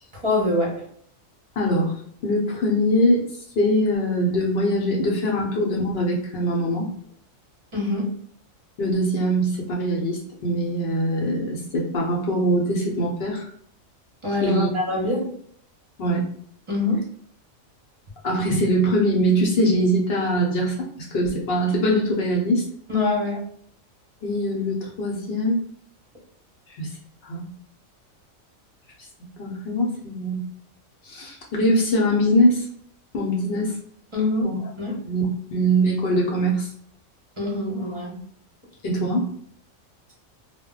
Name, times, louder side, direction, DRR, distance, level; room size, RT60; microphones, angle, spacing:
voice 1, 0.2-0.7 7.7-8.1 14.2-15.2 16.7-17.0 22.9-23.4 34.1-34.5 34.8-35.0 37.4-38.1, left 2 dB, 30° right, -3 dB, 0.7 m, -24 dB
voice 2, 1.6-1.9 2.2-3.2 3.6-6.9 8.8-13.5 14.4-14.7 16.0-16.3 18.2-22.6 24.2-25.6 26.8-26.9 27.2-27.5 29.4-30.5 31.0-32.7 33.1-33.8 34.4-34.6 35.1-35.2 35.5-36.7 38.8-39.3, equal, 55° left, -2 dB, 0.8 m, -22 dB
2.2 x 2.1 x 3.7 m, 0.62 s
omnidirectional pair, 1.4 m